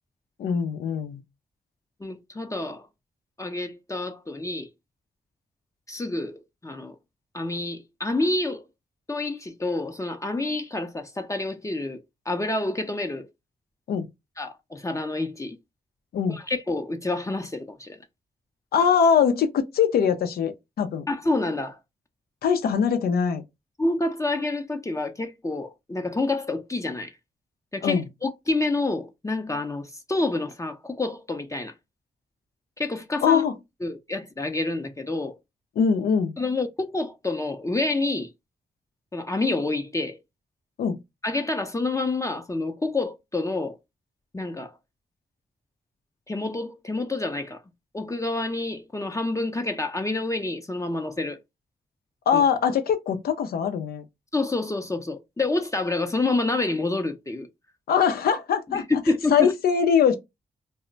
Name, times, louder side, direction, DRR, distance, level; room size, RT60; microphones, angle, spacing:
voice 1, 0.4-1.2 13.9-14.1 16.1-16.4 18.7-21.0 22.4-23.4 27.8-28.1 33.2-33.5 35.8-36.3 40.8-41.0 52.3-54.0 57.9-58.8 59.3-60.1, left 7 dB, 80° left, 0.5 m, -22 dB
voice 2, 2.0-2.9 3.4-4.7 5.9-7.0 7.3-8.6 9.1-12.0 12.3-13.3 14.4-15.6 16.3-18.0 21.1-21.8 23.8-27.1 27.7-31.7 32.8-33.4 33.8-35.4 36.4-38.3 39.1-40.2 41.2-43.8 44.3-44.7 46.3-47.6 47.9-51.4 52.3-52.4 54.3-57.5 58.7-59.5, left 2 dB, 20° left, 0.5 m, -28 dB
2.1 x 2.0 x 3.7 m
supercardioid pair, 45°, 16 cm